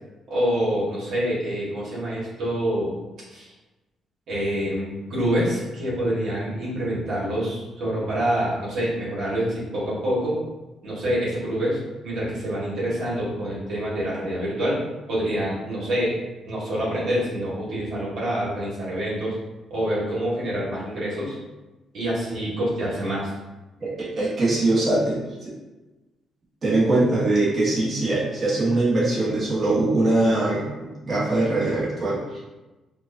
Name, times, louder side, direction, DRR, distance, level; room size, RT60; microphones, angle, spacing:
voice 1, 0.3-2.9 3.3-3.5 4.3-10.4 10.8-14.8 15.1-16.1 16.4-19.3 19.7-21.3 21.9-23.3, equal, 70° right, -7 dB, 1.5 m, -26 dB
voice 2, 23.8-25.5 26.6-32.4, right 2 dB, 35° right, -7 dB, 1.3 m, -22 dB
4.4 x 2.4 x 2.6 m, 1.1 s
cardioid pair, 90°, 0 cm